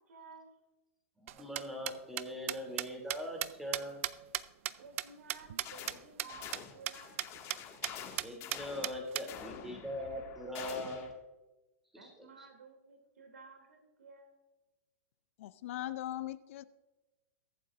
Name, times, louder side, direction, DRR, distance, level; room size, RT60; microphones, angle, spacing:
voice 1, 0.1-0.5 4.8-7.1 11.9-14.3, right 4 dB, 85° right, 5 dB, 2.7 m, -54 dB
voice 2, 1.2-4.0 8.2-11.1 11.9-12.1, equal, 5° right, 1 dB, 2.8 m, -41 dB
sound 1, 1.3-5.9 6.2-6.3 6.5-6.6 6.9-7.0 7.2-7.6 7.8-7.9 8.2-9.2, right 14 dB, 60° right, 0.5 m, -36 dB
sound 2, 5.6-6.0 6.3-11.1, left 8 dB, 35° left, 1.9 m, -47 dB
voice 3, 15.4-16.6, left 14 dB, 60° left, 15 dB, 0.6 m, -39 dB
22.5 x 7.7 x 2.5 m, 1.1 s
hypercardioid pair, 125°, 8 cm